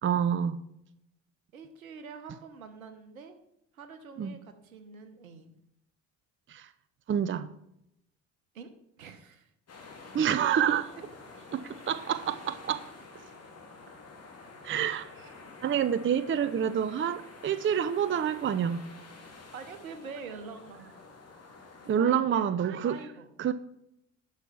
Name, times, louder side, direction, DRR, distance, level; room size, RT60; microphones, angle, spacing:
voice 1, 0.0-0.6 4.2-4.4 6.5-6.7 7.1-7.5 10.1-10.9 11.5-12.9 13.1-13.2 14.6-15.1 15.6-18.8 21.9-23.0 23.4-23.5, right 8 dB, 30° right, 13 dB, 0.7 m, -27 dB
voice 2, 1.5-3.4 3.7-5.6 8.5-8.7 9.0-9.5 19.5-20.9 22.0-22.5 22.8-23.3, right 5 dB, 90° right, 8 dB, 1.1 m, -45 dB
sound 1, 9.7-21.9, left 3 dB, 35° left, 3.1 m, -49 dB
11.5 x 6.3 x 5.6 m, 0.79 s
hypercardioid pair, 60°, 40 cm